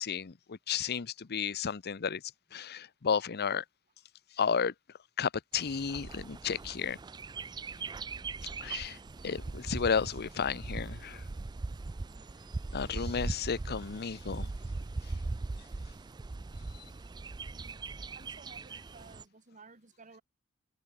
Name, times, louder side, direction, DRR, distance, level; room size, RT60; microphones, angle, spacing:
voice 1, 0.0-2.2 2.5-3.6 4.4-4.7 5.2-7.0 8.6-9.0 9.2-11.2 12.7-14.5, left 6 dB, 50° left, 0.7 m, -32 dB
Bird, 5.5-19.2, right 3 dB, 20° right, 0.3 m, -40 dB
voice 2, 17.4-17.8 18.1-20.2, right 4 dB, 35° right, 2.0 m, -56 dB
open air
head